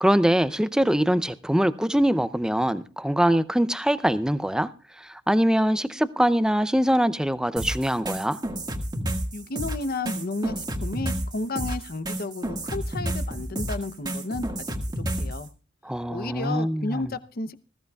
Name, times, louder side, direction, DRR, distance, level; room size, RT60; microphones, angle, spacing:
voice 1, 0.0-4.7 5.0-8.4 15.8-17.1, equal, 5° right, 0.5 m, -23 dB
sound 1, 7.6-15.4, right 1 dB, 20° right, 1.8 m, -30 dB
voice 2, 9.3-14.5 15.0-15.5 16.1-17.6, left 2 dB, 50° left, 0.8 m, -32 dB
19.5 x 15.5 x 2.4 m
head